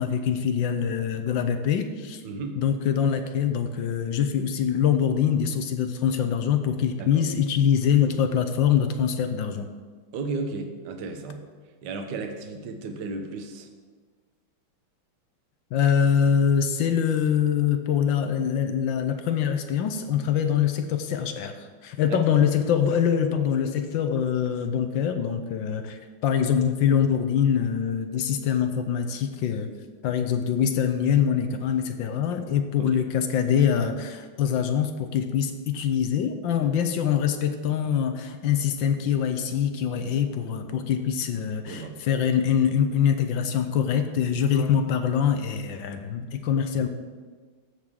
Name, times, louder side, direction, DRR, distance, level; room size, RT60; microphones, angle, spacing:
voice 1, 0.0-2.2 2.6-9.7 15.7-29.7 30.0-46.9, left 8 dB, 70° left, 8 dB, 1.3 m, -24 dB
voice 2, 2.2-2.6 7.0-7.3 10.1-11.4 11.8-13.7 22.1-22.2 32.8-33.0 41.7-42.0, right 3 dB, 60° right, 5 dB, 1.4 m, -34 dB
15.0 x 6.3 x 3.7 m, 1.5 s
omnidirectional pair, 2.4 m